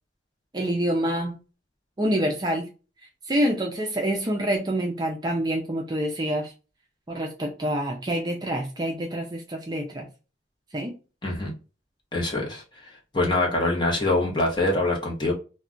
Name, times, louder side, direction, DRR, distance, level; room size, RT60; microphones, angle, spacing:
voice 1, 0.5-1.4 2.0-2.7 3.3-6.5 7.1-10.0 10.7-10.9, right 1 dB, 20° right, 0.4 m, -26 dB
voice 2, 12.1-12.6 13.1-15.3, left 2 dB, 25° left, 0.8 m, -24 dB
2.3 x 2.2 x 3.6 m
head